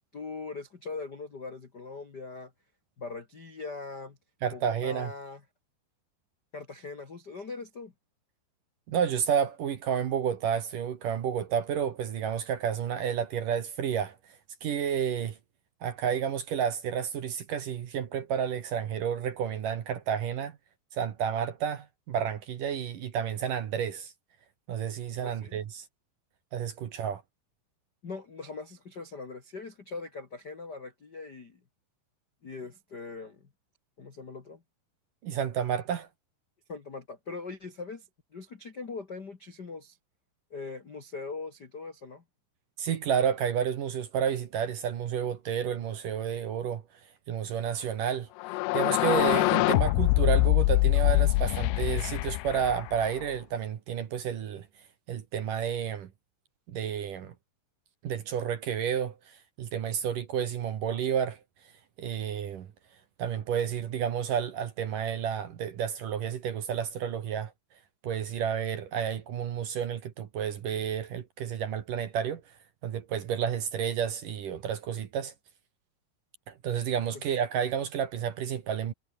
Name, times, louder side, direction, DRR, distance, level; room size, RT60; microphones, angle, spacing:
voice 1, 0.1-2.5 3.0-4.2 4.5-5.4 6.5-7.9 25.2-25.6 28.0-31.6 32.4-33.4 34.0-34.6 36.7-38.1 38.3-40.0 40.5-42.2 77.1-77.2, left 4 dB, 55° left, 1.1 m, -41 dB
voice 2, 4.4-5.1 8.9-14.2 14.6-15.4 15.8-20.6 20.9-24.1 24.7-25.8 26.5-27.2 35.2-36.1 42.8-46.8 47.3-48.3 48.7-54.7 55.1-56.1 56.7-57.3 58.0-61.4 62.0-62.7 63.2-67.5 68.0-72.4 72.8-75.3 76.5-78.9, right 8 dB, 55° right, 2.6 m, -31 dB
sound 1, 48.4-53.2, left 22 dB, 85° left, 2.3 m, -24 dB
omnidirectional pair, 5.4 m